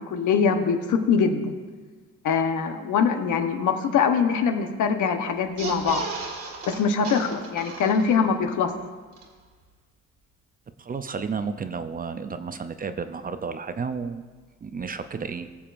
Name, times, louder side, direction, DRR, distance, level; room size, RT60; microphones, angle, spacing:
voice 1, 0.0-1.5 2.2-6.1 6.7-8.7, left 6 dB, 80° left, 6 dB, 1.0 m, -23 dB
sound 1, 5.4-8.4 8.8-8.9 9.1-9.2, right 4 dB, 50° right, 1.7 m, -35 dB
voice 2, 10.8-14.3 14.6-15.5, right 5 dB, 30° right, 10 dB, 0.5 m, -32 dB
19.0 x 7.1 x 2.5 m, 1.4 s
cardioid pair, 90°, 30 cm